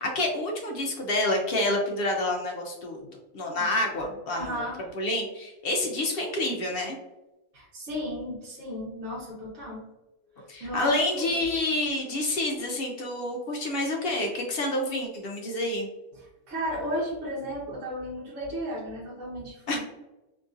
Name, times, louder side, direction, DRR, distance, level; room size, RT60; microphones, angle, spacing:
voice 1, 0.0-3.0 3.3-4.6 4.9-7.0 10.5-15.9 19.7-19.8, left 1 dB, 65° left, 1 dB, 0.6 m, -28 dB
voice 2, 4.3-4.9 7.5-9.8 10.4-11.4 16.1-19.8, equal, 65° right, -7 dB, 1.2 m, -34 dB
2.9 x 2.6 x 2.4 m, 1.0 s
omnidirectional pair, 1.4 m